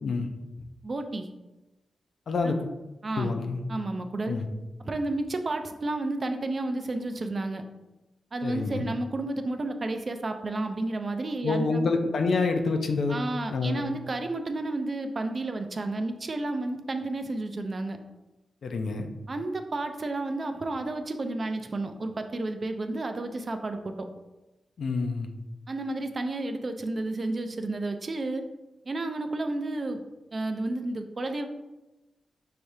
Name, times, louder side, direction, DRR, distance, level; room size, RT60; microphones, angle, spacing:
voice 1, 0.8-1.3 2.4-2.5 3.0-3.4 3.7-4.4 4.8-7.6 8.3-11.9 13.1-18.0 19.3-24.1 25.7-28.4 28.9-30.0 30.3-31.5, right 2 dB, 40° right, 6 dB, 0.4 m, -31 dB
voice 2, 3.2-3.6 4.3-4.5 8.4-8.9 11.4-13.2 13.5-13.8 18.6-19.1 24.8-25.3, left 4 dB, 65° left, 5 dB, 0.5 m, -27 dB
5.8 x 3.3 x 2.7 m, 1.1 s
cardioid pair, 95°, 0 cm